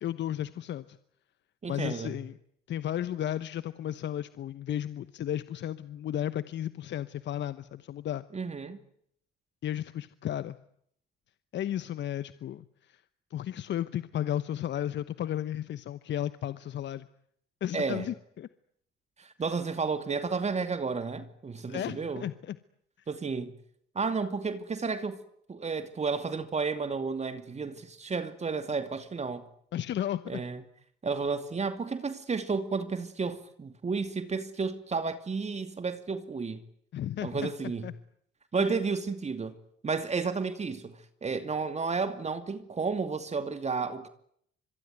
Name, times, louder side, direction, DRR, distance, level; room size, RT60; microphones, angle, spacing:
voice 1, 0.0-1.0 1.7-2.4 2.7-8.2 9.6-10.6 11.5-13.0 13.3-17.1 17.6-18.5 21.7-22.6 29.7-30.4 36.9-37.5 37.8-37.9 38.6-38.8, left 11 dB, 65° left, 1.1 m, -34 dB
voice 2, 1.6-2.2 8.3-8.8 17.7-18.1 19.2-22.3 23.1-23.5 23.9-25.2 25.5-29.5 30.3-30.6 31.0-36.6 37.2-37.9 38.5-39.5 39.8-44.1, right 4 dB, 35° right, 2.6 m, -32 dB
26.0 x 22.5 x 9.4 m
cardioid pair, 75°, 20 cm